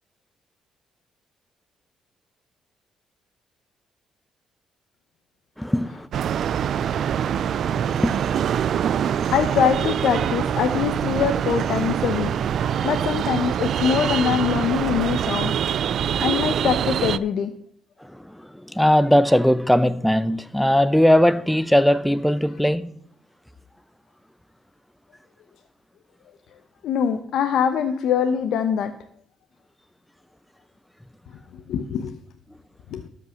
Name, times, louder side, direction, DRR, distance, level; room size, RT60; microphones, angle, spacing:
voice 1, 5.6-6.1 6.8-9.3 12.8-12.9 15.9-16.3 18.0-22.9, equal, 5° left, 0.7 m, -21 dB
sound 1, 6.1-17.2, right 9 dB, 65° right, 0.4 m, -24 dB
voice 2, 9.1-12.3 12.8-15.5 16.2-17.5 26.8-28.9 31.7-32.2 32.9-33.0, left 8 dB, 80° left, 0.8 m, -23 dB
12.5 x 5.4 x 6.3 m
cardioid pair, 90°, 0 cm